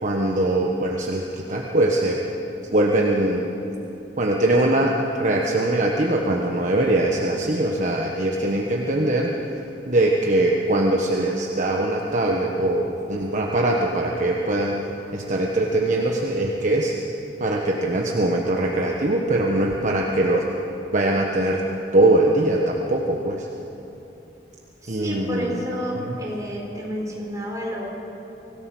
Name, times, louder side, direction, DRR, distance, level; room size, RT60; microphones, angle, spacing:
voice 1, 0.0-2.2 2.7-3.5 4.2-9.3 9.9-14.8 15.1-16.9 17.4-20.4 20.9-21.6 21.9-23.5 24.9-25.6 26.0-26.2, right 1 dB, 45° right, -1 dB, 1.4 m, -22 dB
voice 2, 24.8-27.9, equal, 20° right, -3 dB, 4.6 m, -30 dB
25.0 x 17.0 x 6.3 m, 2.9 s
head